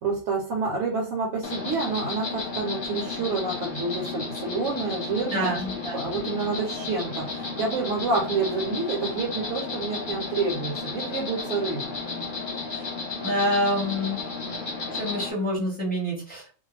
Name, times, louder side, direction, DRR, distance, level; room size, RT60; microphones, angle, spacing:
voice 1, 0.0-5.6 5.9-11.8, right 4 dB, 70° right, 0 dB, 0.9 m, -28 dB
Insect, 1.4-15.3, left 3 dB, 45° left, 0.8 m, -33 dB
voice 2, 5.3-6.0 12.7-12.8 13.2-14.2 14.9-16.6, equal, 10° left, -5 dB, 0.8 m, -27 dB
2.3 x 2.1 x 3.1 m, 0.39 s
omnidirectional pair, 1.4 m